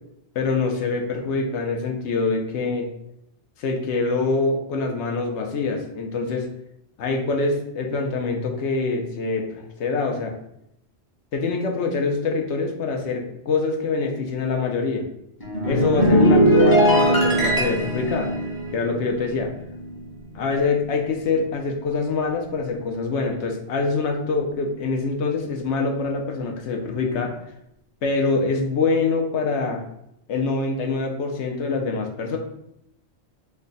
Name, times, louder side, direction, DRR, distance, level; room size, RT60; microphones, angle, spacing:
voice 1, 0.3-2.9 3.6-6.5 7.0-10.3 11.3-15.0 15.7-18.3 18.7-19.5 20.3-27.3 28.0-29.8 30.3-32.4, left 4 dB, 80° left, 3 dB, 0.9 m, -25 dB
sound 1, 15.4-20.0 20.3-20.6, equal, 20° left, 0.8 m, -20 dB
3.2 x 2.3 x 3.8 m, 0.79 s
omnidirectional pair, 1.2 m